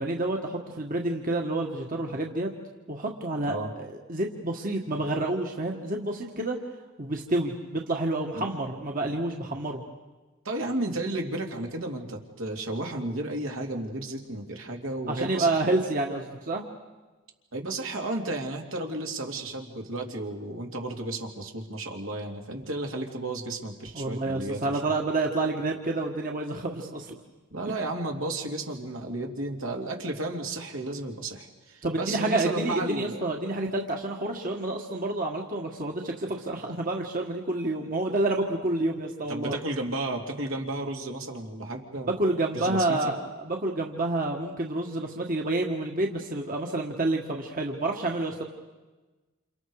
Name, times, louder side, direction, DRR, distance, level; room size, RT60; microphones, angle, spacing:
voice 1, 0.0-2.5 2.9-6.6 7.0-9.8 15.1-16.6 23.9-27.1 31.8-39.6 42.2-43.2 43.4-48.4, right 2 dB, 40° right, 1 dB, 1.7 m, -29 dB
voice 2, 10.4-15.6 17.5-24.6 27.5-33.2 39.3-42.2 42.5-43.1, right 2 dB, 75° right, 1 dB, 2.8 m, -33 dB
29.0 x 28.0 x 4.9 m, 1.2 s
head